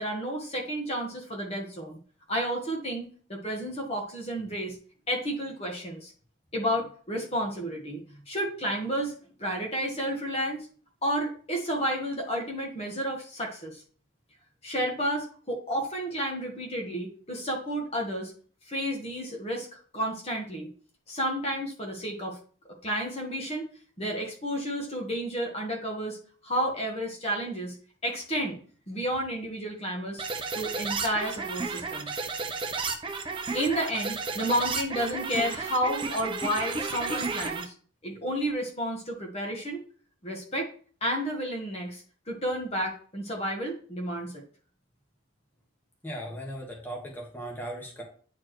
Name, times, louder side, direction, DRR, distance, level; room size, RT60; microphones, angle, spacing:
voice 1, 0.0-2.0 2.3-4.8 5.1-6.1 6.5-8.0 8.3-9.1 9.4-10.7 11.0-13.8 14.6-18.3 18.7-19.7 19.9-20.7 21.1-22.4 22.8-23.7 24.0-26.2 26.4-27.8 28.0-28.6 28.9-30.2 30.5-32.1 33.4-37.7 38.0-39.8 40.2-40.7 41.0-44.4, equal, 30° left, 0 dB, 1.4 m, -31 dB
sound 1, 30.2-37.6, right 4 dB, 25° right, 0.7 m, -32 dB
voice 2, 46.0-48.0, right 1 dB, 10° left, -2 dB, 1.4 m, -37 dB
9.5 x 4.5 x 3.1 m, 0.43 s
head